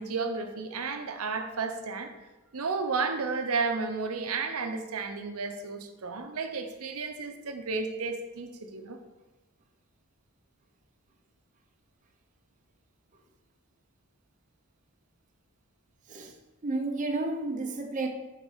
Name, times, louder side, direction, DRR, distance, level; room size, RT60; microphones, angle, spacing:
voice 1, 0.0-2.1 2.5-9.0, right 4 dB, 75° right, 0.7 m, -32 dB
voice 2, 16.6-18.1, right 2 dB, 35° right, 0.7 m, -31 dB
7.2 x 4.1 x 5.5 m
head